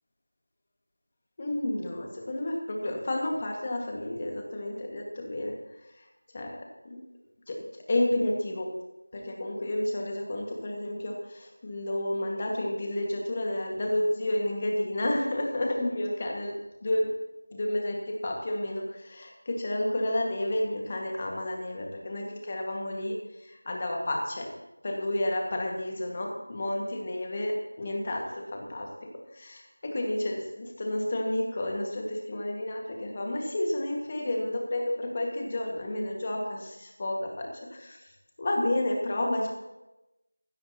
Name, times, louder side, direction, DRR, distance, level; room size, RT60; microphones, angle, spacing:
voice 1, 1.4-5.5 6.3-6.6 7.5-7.6 7.9-8.7 9.1-16.5 16.8-17.1 17.5-23.2 23.4-24.5 24.8-28.9 29.3-38.0 38.4-39.5, left 1 dB, 20° left, 0 dB, 1.9 m, -31 dB
16.0 x 16.0 x 3.0 m, 1.0 s
figure-of-eight pair, 175°, 0 cm